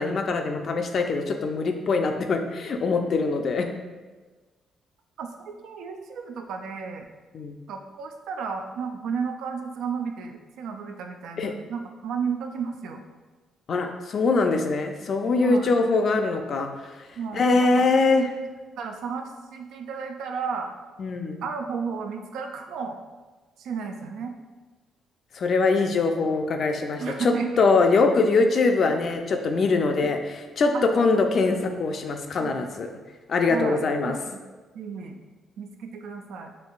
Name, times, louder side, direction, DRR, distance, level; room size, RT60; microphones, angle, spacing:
voice 1, 0.0-3.7 7.3-7.5 11.4-11.5 13.7-16.9 17.3-18.3 21.0-21.4 25.3-32.9 33.3-34.1, left 3 dB, 55° left, 5 dB, 0.4 m, -23 dB
voice 2, 5.2-7.1 7.7-13.0 15.4-15.7 17.2-17.9 18.8-20.7 21.4-23.0 23.6-24.3 27.0-27.7 30.7-31.1 32.4-32.7 33.5-34.4 34.7-35.2 35.6-36.5, right 5 dB, 80° right, 4 dB, 0.3 m, -33 dB
4.3 x 2.6 x 2.4 m, 1.3 s
cardioid pair, 90°, 0 cm